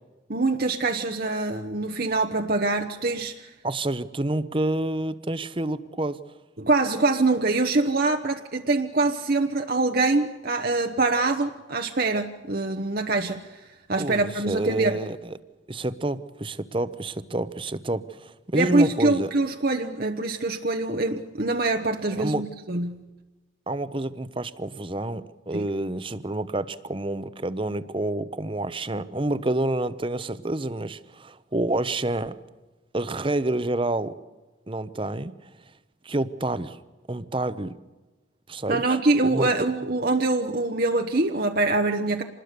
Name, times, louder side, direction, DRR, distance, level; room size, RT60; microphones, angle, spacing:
voice 1, 0.3-3.5 6.6-15.0 18.5-23.0 25.5-25.7 38.7-42.2, right 2 dB, 50° right, 4 dB, 1.1 m, -24 dB
voice 2, 3.6-6.2 14.0-15.4 15.7-19.3 22.1-22.5 23.7-32.4 32.9-34.2 34.7-35.5 36.0-36.8 37.1-37.8 38.5-39.0 39.2-39.5, right 2 dB, 25° right, 14 dB, 0.8 m, -28 dB
27.0 x 20.5 x 6.8 m, 1.2 s
head